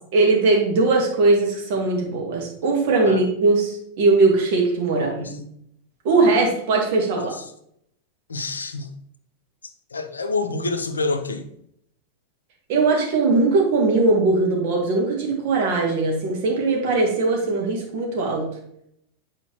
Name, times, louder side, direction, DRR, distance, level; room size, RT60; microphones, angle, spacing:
voice 1, 0.1-5.4 6.0-7.3 12.7-18.5, right 3 dB, 50° right, -1 dB, 1.9 m, -20 dB
voice 2, 4.9-5.4 7.1-7.4 8.3-8.9 9.6-11.5, left 3 dB, 75° left, 7 dB, 0.6 m, -28 dB
8.3 x 4.5 x 3.1 m, 0.72 s
figure-of-eight pair, 90°, 0 cm